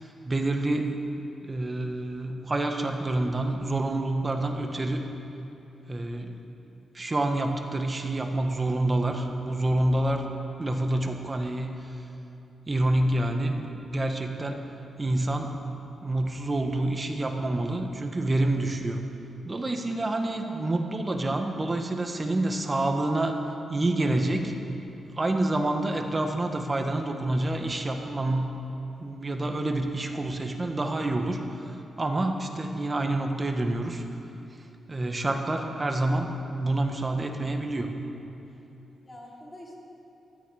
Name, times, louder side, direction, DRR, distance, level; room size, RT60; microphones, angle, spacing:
voice 1, 0.2-1.0 1.4-5.0 5.9-6.4 6.9-10.3 10.6-11.8 12.7-14.6 15.0-15.6 16.0-19.0 19.4-23.3 23.7-24.6 25.2-28.5 29.0-31.4 31.7-34.0 34.9-37.9, right 2 dB, 30° right, 4 dB, 1.4 m, -27 dB
voice 2, 20.3-20.7 39.0-39.8, equal, 20° left, -4 dB, 3.6 m, -46 dB
15.5 x 12.5 x 5.0 m, 2.9 s
cardioid pair, 75°, 0 cm